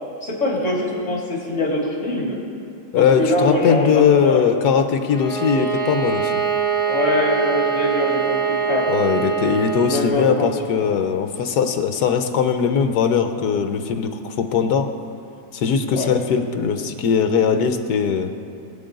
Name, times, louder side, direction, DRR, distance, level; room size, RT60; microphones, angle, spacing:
voice 1, 0.2-2.4 3.0-4.4 6.9-8.9 9.8-10.5 15.9-16.1, left 2 dB, 45° left, -3 dB, 3.2 m, -23 dB
voice 2, 2.9-6.4 8.9-14.9 15.5-18.3, left 7 dB, 70° left, 7 dB, 1.5 m, -20 dB
Bowed string instrument, 5.1-10.0, right 6 dB, ahead, 1.5 m, -23 dB
23.0 x 8.0 x 3.9 m, 2.7 s
omnidirectional pair, 1.8 m